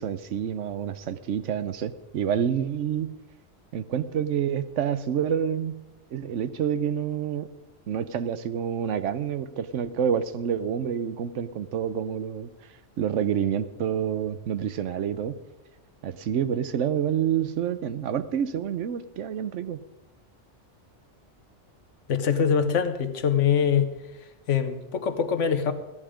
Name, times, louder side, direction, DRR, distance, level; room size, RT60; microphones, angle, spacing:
voice 1, 0.0-3.2 3.7-5.8 6.1-7.5 7.9-12.5 13.0-15.4 16.0-19.8, right 8 dB, 85° right, 13 dB, 1.1 m, -28 dB
voice 2, 22.1-23.9 24.5-25.7, left 7 dB, 85° left, 9 dB, 1.4 m, -23 dB
15.0 x 11.0 x 5.0 m, 1.0 s
omnidirectional pair, 1.2 m